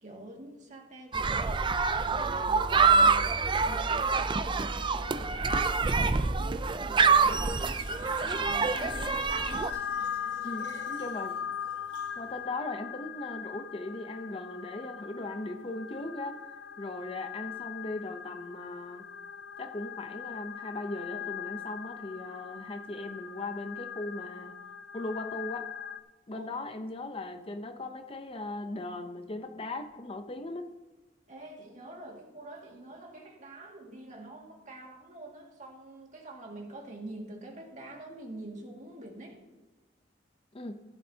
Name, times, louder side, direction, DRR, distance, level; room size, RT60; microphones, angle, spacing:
voice 1, 0.0-1.7 1.9-3.3 3.6-9.1 26.3-26.5 31.3-39.4, right 2 dB, 45° right, 0 dB, 2.1 m, -46 dB
sound 1, 1.1-9.7, right 4 dB, 25° right, 0.4 m, -26 dB
sound 2, 7.3-26.0, left 8 dB, 70° left, 0.8 m, -40 dB
Fill (with liquid), 7.4-12.4, right 2 dB, 80° right, 3.3 m, -52 dB
voice 2, 10.4-11.4 12.2-19.0 19.6-24.5 24.9-25.7 26.3-30.7 40.5-40.8, left 2 dB, 30° left, 7 dB, 0.7 m, -38 dB
15.5 x 11.0 x 2.8 m, 1.2 s
head